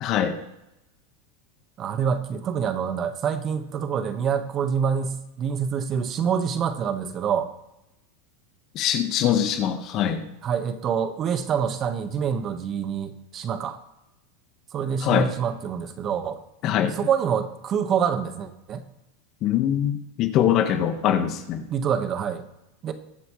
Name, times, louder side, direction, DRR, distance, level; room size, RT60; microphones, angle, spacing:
voice 1, 0.0-0.4 8.7-10.2 15.0-15.3 16.6-16.9 19.4-21.6, left 10 dB, 45° left, 7 dB, 1.6 m, -23 dB
voice 2, 1.8-7.5 10.4-13.8 14.7-16.4 16.9-18.8 21.7-22.4 22.8-22.9, right 7 dB, 35° right, 8 dB, 1.6 m, -26 dB
21.5 x 7.7 x 3.3 m, 0.88 s
hypercardioid pair, 105°, 0 cm